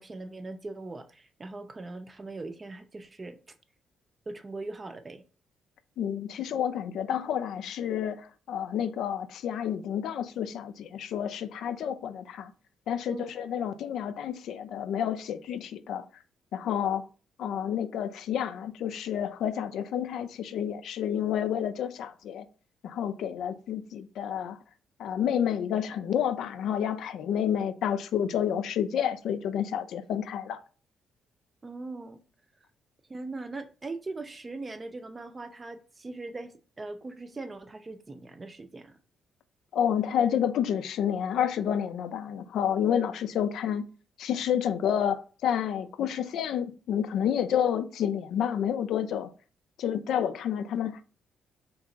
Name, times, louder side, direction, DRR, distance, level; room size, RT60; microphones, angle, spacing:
voice 1, 0.0-3.4 4.3-5.2 13.1-13.3 31.6-32.2 33.1-39.0, right 3 dB, 30° right, 0.5 m, -40 dB
voice 2, 6.0-12.5 12.9-16.0 16.5-17.0 17.4-22.5 22.8-24.6 25.0-30.6 39.7-43.8 44.2-49.3 49.8-51.0, left 9 dB, 75° left, 0.3 m, -29 dB
2.9 x 2.4 x 3.8 m
supercardioid pair, 65°, 0 cm